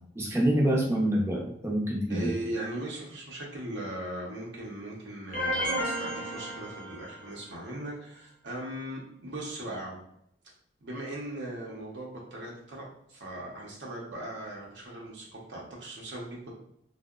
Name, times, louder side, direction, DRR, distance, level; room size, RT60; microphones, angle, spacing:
voice 1, 0.2-2.3, right 1 dB, 15° right, -3 dB, 0.5 m, -26 dB
voice 2, 2.1-10.0 10.8-16.5, right 1 dB, 80° right, -3 dB, 0.6 m, -39 dB
sound 1, 5.3-7.4, equal, 50° left, 0.8 m, -32 dB
2.7 x 2.0 x 2.3 m, 0.73 s
head